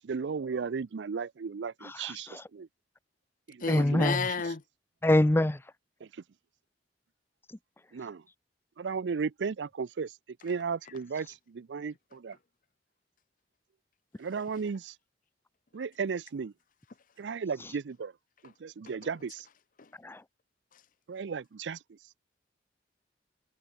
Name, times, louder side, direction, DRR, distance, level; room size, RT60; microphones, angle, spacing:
voice 1, 0.0-2.7 3.5-4.1 6.0-6.1 7.9-8.2 8.8-10.2 10.4-12.4 14.2-15.0 15.7-16.5 17.2-18.1 18.4-19.5 21.1-22.0, right 5 dB, 85° right, 0.5 m, -35 dB
voice 2, 1.8-2.5 3.7-4.3 5.0-5.7 7.5-7.6 17.6-17.7 19.9-20.2, left 1 dB, 15° left, 0.5 m, -26 dB
voice 3, 3.6-4.6 19.0-19.1 19.8-19.9 20.7-20.8, left 4 dB, 50° left, 0.8 m, -32 dB
head